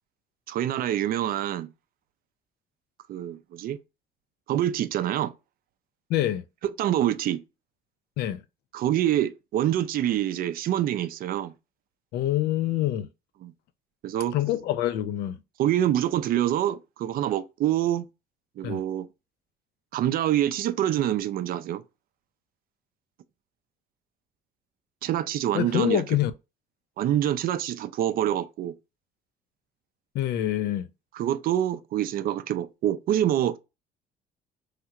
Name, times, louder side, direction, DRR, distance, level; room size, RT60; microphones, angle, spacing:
voice 1, 0.5-1.7 3.1-3.8 4.5-5.3 6.8-7.4 8.7-11.5 13.4-13.5 14.0-14.3 15.6-18.1 18.6-19.1 19.9-21.8 25.0-26.0 27.0-28.7 31.1-33.6, right 11 dB, 60° right, 0.4 m, -26 dB
voice 2, 6.1-6.4 8.2-8.4 12.1-13.1 14.3-15.4 18.6-18.8 25.5-26.3 30.1-30.9, left 13 dB, 75° left, 0.5 m, -26 dB
3.3 x 2.4 x 2.8 m
cardioid pair, 110°, 17 cm